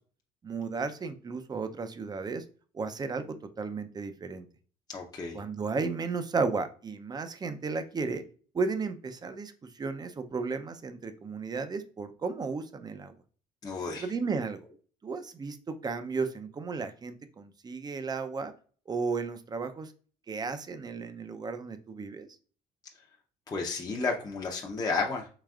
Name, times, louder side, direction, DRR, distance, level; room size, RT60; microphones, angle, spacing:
voice 1, 0.4-2.4 2.7-4.5 5.3-8.2 8.5-13.1 14.0-14.6 15.0-18.5 18.9-19.9 20.3-22.3, right 4 dB, 25° right, 10 dB, 0.5 m, -34 dB
voice 2, 4.9-5.4 13.6-14.1 23.5-25.3, left 4 dB, 20° left, 0 dB, 0.7 m, -32 dB
4.9 x 3.3 x 2.4 m, 0.41 s
cardioid pair, 110°, 17 cm